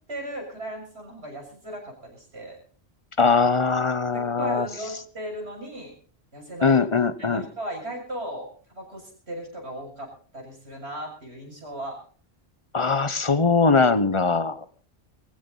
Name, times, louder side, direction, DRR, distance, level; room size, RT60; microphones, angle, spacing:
voice 1, 0.1-2.6 4.1-5.9 6.3-6.8 7.2-8.5 8.7-12.0, right 1 dB, 80° right, 1 dB, 7.2 m, -36 dB
voice 2, 3.2-4.7 6.6-7.4 12.7-14.6, left 4 dB, 30° left, 14 dB, 1.1 m, -21 dB
22.5 x 15.5 x 4.1 m, 0.42 s
omnidirectional pair, 1.1 m